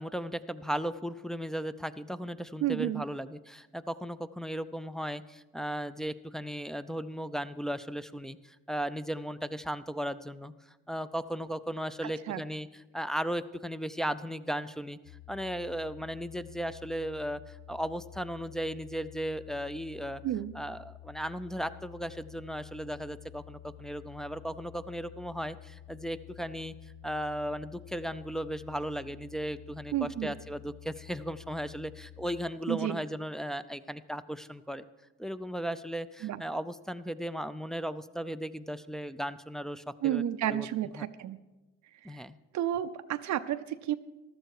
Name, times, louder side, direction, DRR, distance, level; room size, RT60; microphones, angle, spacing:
voice 1, 0.0-10.5 10.9-12.7 12.9-15.0 15.3-20.2 20.5-26.8 27.0-34.8 35.2-40.7 40.9-41.1 42.0-42.4, equal, ahead, 10 dB, 0.5 m, -36 dB
voice 2, 2.6-3.0 12.0-12.4 20.2-20.5 29.9-30.4 32.7-33.0 36.2-36.4 40.0-41.4 42.0-42.2 42.5-43.9, right 12 dB, 70° right, 9 dB, 0.6 m, -31 dB
sound 1, 15.0-32.5, left 13 dB, 90° left, 0.6 m, -51 dB
14.5 x 12.5 x 4.8 m, 1.1 s
cardioid pair, 90°, 30 cm